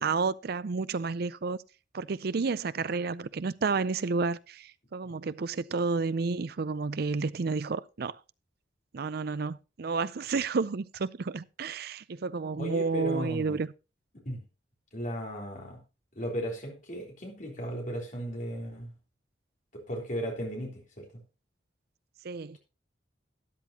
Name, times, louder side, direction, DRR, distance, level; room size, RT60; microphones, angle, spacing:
voice 1, 0.0-1.6 1.9-8.2 8.9-13.7 22.2-22.6, right 4 dB, 55° right, 0.5 m, -31 dB
voice 2, 12.6-13.6 14.3-14.4 14.9-15.8 16.2-18.9 19.7-21.0, equal, 45° left, 3.6 m, -36 dB
13.0 x 10.5 x 2.9 m
head